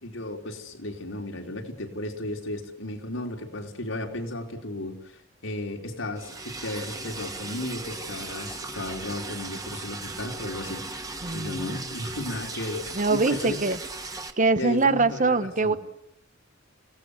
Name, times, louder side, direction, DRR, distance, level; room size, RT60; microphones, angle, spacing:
voice 1, 0.0-5.0 5.4-13.6 14.6-15.8, left 1 dB, 85° left, 2 dB, 4.4 m, -34 dB
Liquid, 6.2-14.3, right 3 dB, 20° right, 2.2 m, -37 dB
voice 2, 11.2-11.8 13.0-13.8 14.4-15.8, right 3 dB, 40° right, 12 dB, 1.2 m, -23 dB
29.5 x 18.0 x 8.3 m, 0.73 s
head